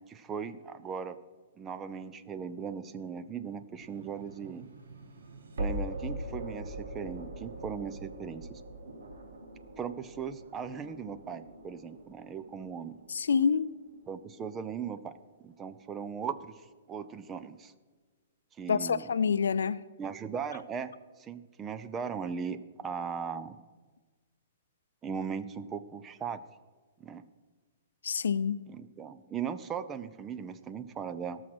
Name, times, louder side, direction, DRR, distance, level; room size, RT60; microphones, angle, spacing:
voice 1, 0.1-1.2 1.6-4.7 5.6-8.6 9.8-13.0 14.1-17.7 18.6-19.1 20.0-23.6 25.0-26.4 27.0-27.2 28.7-31.4, right 6 dB, 15° right, 0.5 m, -38 dB
sound 1, 3.7-14.8, right 1 dB, 85° right, 2.0 m, -42 dB
voice 2, 13.1-13.7 18.7-19.8 28.0-28.6, left 6 dB, 90° left, 0.4 m, -27 dB
17.0 x 6.4 x 6.1 m
hypercardioid pair, 150°, 0 cm